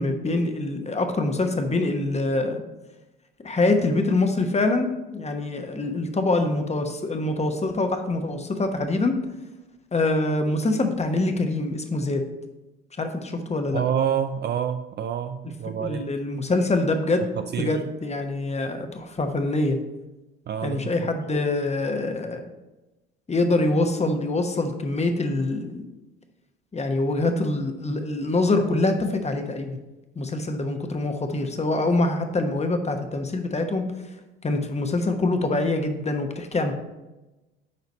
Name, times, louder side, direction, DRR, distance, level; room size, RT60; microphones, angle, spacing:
voice 1, 0.0-2.6 3.4-9.1 9.9-12.2 13.0-13.8 15.8-17.3 17.6-19.8 20.6-22.4 23.3-25.8 26.7-29.8 30.1-33.9 34.4-36.7, left 2 dB, 20° left, 6 dB, 1.1 m, -25 dB
voice 2, 13.7-16.1 17.4-17.8 20.5-21.1, right 9 dB, 35° right, 9 dB, 0.4 m, -28 dB
9.6 x 4.0 x 4.2 m, 1.1 s
hypercardioid pair, 65°, 32 cm